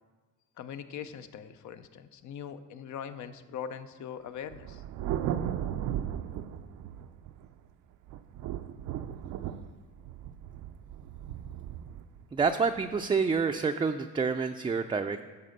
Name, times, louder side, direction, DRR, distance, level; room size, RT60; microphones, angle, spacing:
voice 1, 0.6-4.8, left 8 dB, 75° left, 11 dB, 0.7 m, -41 dB
Thunder, 4.5-7.6 8.1-13.4, right 10 dB, 80° right, 0.5 m, -36 dB
voice 2, 12.3-15.2, right 5 dB, 20° right, 6 dB, 0.4 m, -28 dB
11.0 x 4.1 x 6.5 m, 1.3 s
cardioid pair, 90°, 30 cm